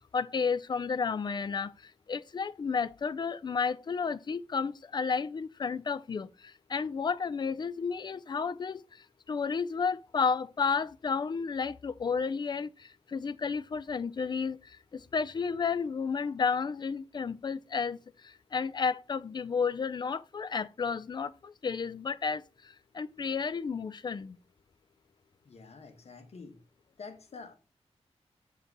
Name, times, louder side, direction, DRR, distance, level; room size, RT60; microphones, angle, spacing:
voice 1, 0.0-24.4, left 5 dB, 40° left, 0.4 m, -32 dB
voice 2, 25.4-26.6 27.0-27.5, left 4 dB, 65° left, 1.2 m, -47 dB
6.9 x 3.7 x 3.9 m
wide cardioid pair, 90°, 11 cm